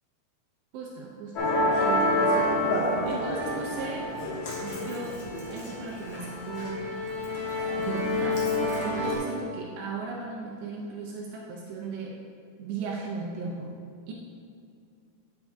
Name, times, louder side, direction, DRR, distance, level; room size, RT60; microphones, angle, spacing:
voice 1, 0.7-2.6 3.0-4.1 4.6-7.2 7.8-12.2 12.6-13.8 14.1-14.2, right 4 dB, 80° right, -2 dB, 2.7 m, -36 dB
Musical instrument, 1.3-9.2, left 1 dB, 60° left, 2.0 m, -28 dB
9.4 x 9.1 x 2.3 m, 2.3 s
omnidirectional pair, 5.3 m